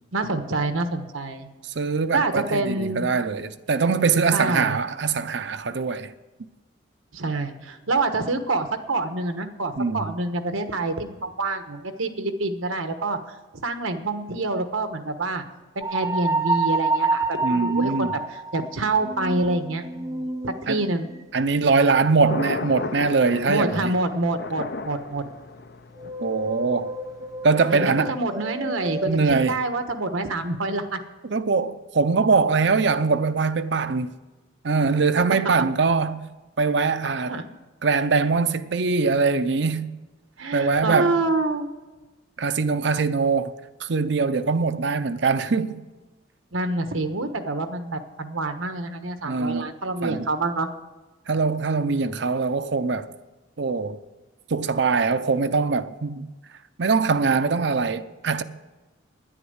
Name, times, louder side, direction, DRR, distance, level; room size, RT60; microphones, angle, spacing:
voice 1, 0.1-1.5 2.1-3.1 4.3-4.8 7.1-15.4 15.7-21.1 23.5-25.2 27.7-29.1 29.5-31.0 37.3-37.4 40.4-41.7 46.5-50.7, right 2 dB, 90° right, 1.2 m, -27 dB
voice 2, 1.8-6.1 9.8-10.1 17.4-18.1 20.7-20.8 21.3-23.9 26.2-26.9 27.4-28.1 29.0-29.6 31.2-34.1 34.6-36.2 36.6-37.4 37.8-39.9 40.5-41.1 42.4-43.5 43.8-45.8 49.2-49.7 50.0-50.3 51.3-53.1 53.6-54.0 54.5-56.3 56.8-58.4, right 4 dB, 60° right, 0.6 m, -22 dB
sound 1, 15.8-21.5 26.0-29.1, right 3 dB, 15° right, 0.5 m, -29 dB
Thunder, 21.4-27.4, left 3 dB, 50° left, 0.6 m, -36 dB
10.5 x 10.0 x 8.0 m
head